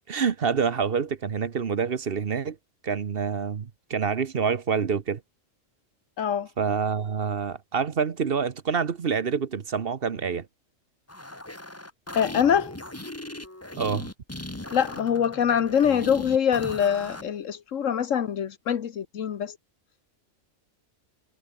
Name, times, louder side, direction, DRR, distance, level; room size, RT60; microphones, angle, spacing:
voice 1, 0.1-2.6 2.8-5.2 6.6-10.5 13.8-14.1, right 6 dB, 50° right, 1.2 m, -27 dB
voice 2, 6.2-6.5 12.1-12.7 14.7-19.6, left 8 dB, 70° left, 1.3 m, -24 dB
sound 1, 11.1-17.3, left 1 dB, 10° left, 1.6 m, -38 dB
omnidirectional pair, 1.4 m